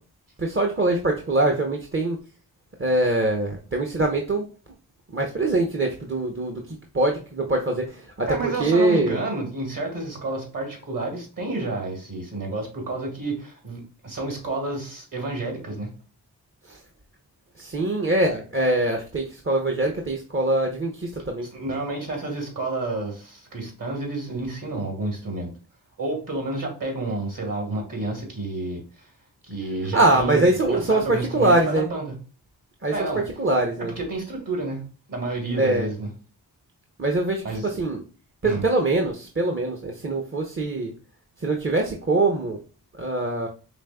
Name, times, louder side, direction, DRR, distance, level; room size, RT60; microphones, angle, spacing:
voice 1, 0.4-2.2 2.8-4.4 5.1-6.6 6.9-8.3 8.6-9.2 16.7-16.8 17.6-21.5 29.9-31.9 32.8-33.1 33.4-33.9 35.6-35.9 37.0-38.0 38.4-40.9 41.4-42.6 43.0-43.5, right 2 dB, 30° right, 2 dB, 0.8 m, -23 dB
voice 2, 8.3-15.9 21.5-25.5 26.0-29.1 29.4-32.2 32.9-33.2 33.8-36.1 37.4-37.7 38.4-38.6, right 2 dB, 50° right, 2 dB, 2.2 m, -30 dB
5.0 x 3.4 x 2.2 m, 0.37 s
cardioid pair, 45°, 41 cm